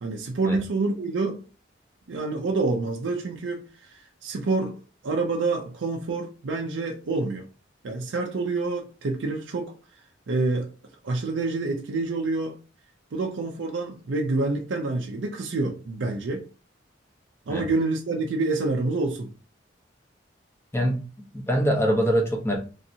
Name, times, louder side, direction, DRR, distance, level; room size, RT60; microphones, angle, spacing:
voice 1, 0.0-1.4 2.1-7.5 7.8-9.7 10.3-10.7 11.0-12.6 13.1-16.4 17.5-19.3, right 3 dB, 85° right, 0.5 m, -27 dB
voice 2, 21.3-22.6, equal, 15° left, 0.7 m, -23 dB
3.1 x 2.7 x 2.6 m
head